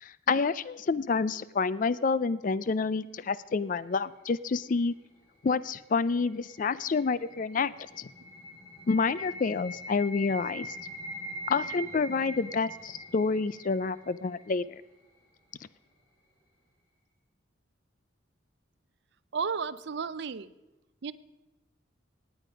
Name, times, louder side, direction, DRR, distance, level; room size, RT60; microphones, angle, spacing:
voice 1, 0.0-4.9 5.4-7.7 8.0-8.1 8.9-10.7 11.5-14.8, left 4 dB, 40° left, 18 dB, 0.4 m, -28 dB
sound 1, 5.7-14.7, equal, 20° left, 5.7 m, -43 dB
voice 2, 19.3-20.5 21.0-21.1, right 5 dB, 55° right, 16 dB, 0.5 m, -33 dB
17.0 x 9.1 x 5.1 m, 1.0 s
head